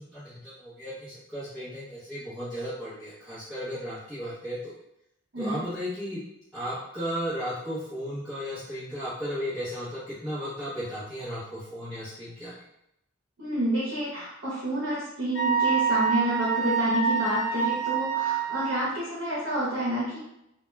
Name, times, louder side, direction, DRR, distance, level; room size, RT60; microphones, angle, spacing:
voice 1, 0.0-4.7 5.4-6.2 6.5-12.6, equal, 5° left, -15 dB, 0.8 m, -35 dB
voice 2, 13.4-20.2, right 1 dB, 75° right, -7 dB, 0.7 m, -29 dB
Wind instrument woodwind instrument, 15.3-18.8, right 6 dB, 75° left, 1.0 m, -26 dB
2.2 x 2.2 x 3.1 m, 0.82 s
head